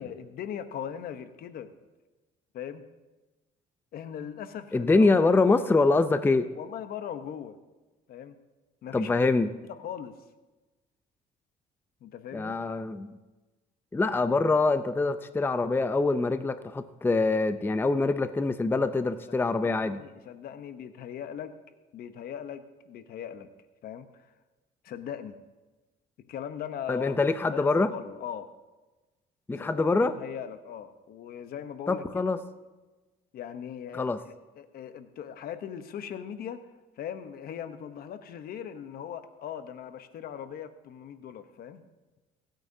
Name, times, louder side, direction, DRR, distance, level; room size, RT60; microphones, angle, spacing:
voice 1, 0.0-1.7 2.5-2.8 3.9-5.1 6.5-7.5 8.1-8.4 8.8-9.1 9.6-10.1 12.0-12.5 19.3-21.5 21.9-23.5 23.8-24.3 24.8-25.3 26.3-27.2 27.4-28.5 29.6-32.3 33.3-36.6 37.0-41.8, left 9 dB, 65° left, 10 dB, 0.9 m, -39 dB
voice 2, 4.7-6.5 8.9-9.5 12.3-13.1 13.9-20.0 26.9-27.9 29.5-30.1 31.9-32.4 33.9-34.2, left 3 dB, 10° left, 11 dB, 0.5 m, -24 dB
27.0 x 9.0 x 2.7 m, 1.2 s
cardioid pair, 110°, 17 cm